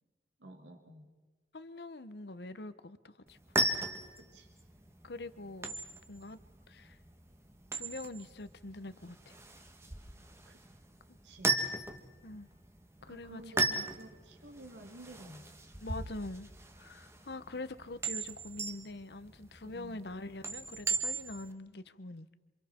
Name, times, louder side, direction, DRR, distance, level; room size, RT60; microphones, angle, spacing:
voice 1, 0.4-1.1 4.1-4.5 10.5-10.6 11.2-11.5 13.1-15.5 19.7-20.0, right 1 dB, 90° right, 3 dB, 2.0 m, -51 dB
voice 2, 1.5-3.4 5.0-5.8 6.1-6.4 6.7-7.0 7.7-9.4 12.2-12.5 13.0-13.9 15.8-16.5 16.8-22.4, left 2 dB, 65° left, 13 dB, 0.9 m, -44 dB
sound 1, 3.3-21.5, right 2 dB, 15° right, 1.3 m, -37 dB
28.0 x 26.5 x 4.4 m, 1.2 s
head